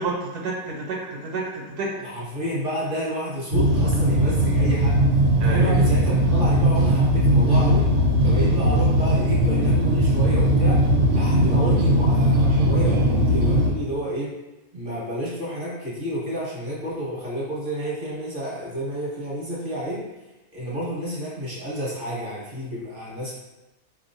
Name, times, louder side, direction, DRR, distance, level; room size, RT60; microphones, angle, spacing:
voice 1, 0.0-1.9 5.4-5.8, right 3 dB, 90° right, -2 dB, 1.3 m, -30 dB
voice 2, 2.0-5.0 5.5-7.9 8.2-10.8 11.1-14.3 14.7-20.1 20.5-23.3, equal, 35° right, -7 dB, 1.4 m, -30 dB
sound 1, 3.5-13.7, equal, 70° right, 1.2 m, -19 dB
4.7 x 2.9 x 2.6 m, 1.0 s
omnidirectional pair, 1.7 m